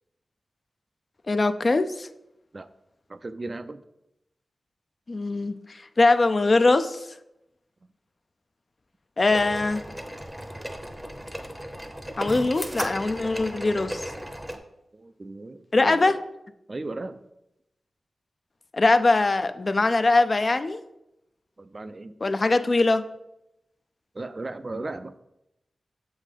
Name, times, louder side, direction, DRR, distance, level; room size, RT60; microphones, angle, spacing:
voice 1, 1.3-2.1 5.1-5.5 6.0-7.1 9.2-9.8 12.2-14.0 15.7-16.2 18.7-20.8 22.2-23.0, left 3 dB, 40° left, 0.3 m, -22 dB
voice 2, 3.1-3.8 14.9-16.1 16.7-17.2 21.6-22.2 24.1-25.1, right 2 dB, 35° right, 0.3 m, -36 dB
sound 1, 9.3-14.6, equal, 5° right, 0.7 m, -35 dB
7.3 x 3.9 x 4.9 m
wide cardioid pair, 105°, 0 cm